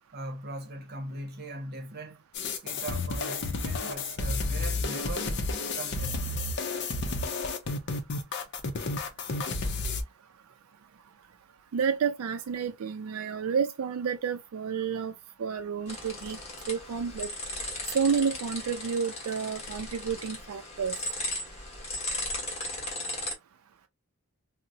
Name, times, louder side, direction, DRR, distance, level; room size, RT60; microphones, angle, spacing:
voice 1, 0.1-2.2 2.6-5.3 5.7-6.3, right 1 dB, 45° right, 0.8 m, -40 dB
sound 1, 2.3-10.0, left 3 dB, 55° left, 0.6 m, -31 dB
voice 2, 11.7-16.4 16.7-17.3 17.9-21.0, right 6 dB, 85° right, 0.4 m, -30 dB
sound 2, 15.9-23.3, left 1 dB, 30° left, 1.2 m, -36 dB
3.8 x 2.1 x 2.6 m
head